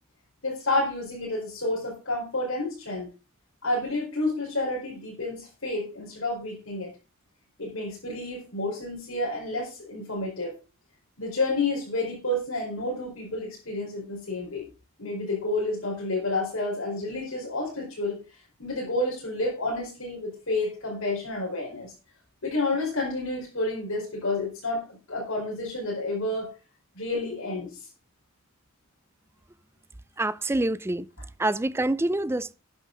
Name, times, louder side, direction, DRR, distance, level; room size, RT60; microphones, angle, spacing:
voice 1, 0.4-3.1 3.6-6.9 7.6-10.5 11.2-14.7 15.0-18.2 18.6-21.9 22.4-26.5 26.9-27.7, left 2 dB, 75° left, 4.6 m, -30 dB
voice 2, 30.2-31.1 31.4-32.5, right 2 dB, 10° right, 0.4 m, -26 dB
12.5 x 9.5 x 3.9 m
head